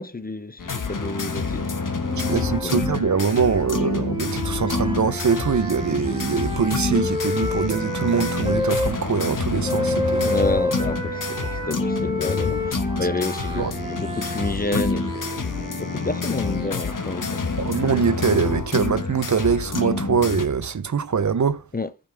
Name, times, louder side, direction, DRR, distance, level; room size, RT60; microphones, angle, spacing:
voice 1, 0.0-1.7 2.6-2.8 10.2-17.5 21.7-21.9, left 2 dB, 25° left, 0.6 m, -30 dB
sound 1, 0.6-20.5, left 4 dB, 65° left, 1.2 m, -28 dB
sound 2, 1.1-17.7, left 2 dB, 85° left, 1.7 m, -45 dB
sound 3, 2.0-8.9 9.6-16.8, left 1 dB, 15° right, 1.5 m, -30 dB
voice 2, 2.3-10.3 13.6-13.7 17.6-21.6, right 6 dB, 55° right, 0.7 m, -23 dB
14.5 x 5.4 x 3.4 m
cardioid pair, 40°, 34 cm